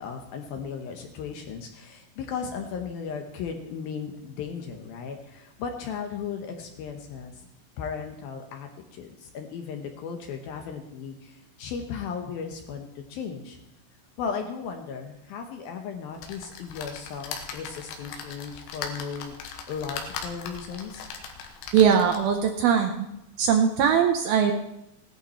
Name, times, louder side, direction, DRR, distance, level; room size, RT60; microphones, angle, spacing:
voice 1, 0.0-7.4 7.8-13.6 14.2-19.3 19.7-21.0, left 6 dB, 70° left, 4 dB, 2.6 m, -36 dB
sound 1, 16.2-22.4 23.0-23.1 23.3-23.4, left 6 dB, 85° left, 3.5 m, -39 dB
voice 2, 21.7-23.1 23.4-24.5, right 7 dB, 75° right, 5 dB, 2.3 m, -21 dB
16.5 x 11.5 x 4.4 m, 0.87 s
omnidirectional pair, 5.1 m